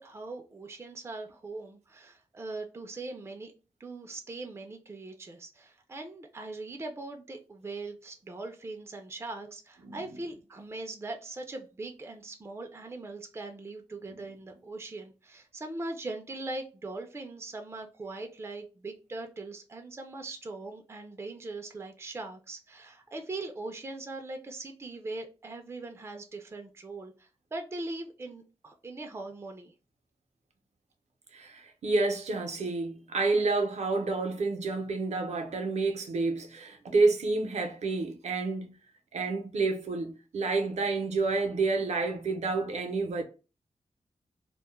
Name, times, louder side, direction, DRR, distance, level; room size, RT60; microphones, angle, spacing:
voice 1, 0.0-3.5 3.8-29.7, right 2 dB, 20° right, 0.4 m, -41 dB
voice 2, 31.3-38.7 39.1-43.2, right 3 dB, 70° right, 0.6 m, -29 dB
2.2 x 2.1 x 3.0 m
cardioid pair, 70°, 12 cm